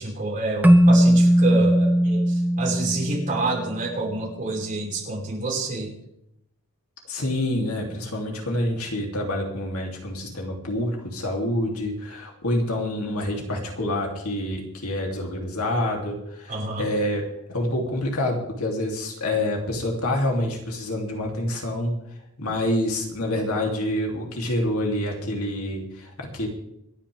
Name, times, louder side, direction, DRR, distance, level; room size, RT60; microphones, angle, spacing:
voice 1, 0.0-5.9 16.5-16.9, right 2 dB, 35° right, -3 dB, 5.3 m, -28 dB
Keyboard (musical), 0.6-3.9, equal, 10° right, 0.6 m, -18 dB
voice 2, 7.1-21.9 22.4-26.5, left 1 dB, 70° left, 1 dB, 3.2 m, -27 dB
27.0 x 9.9 x 3.6 m, 0.78 s
head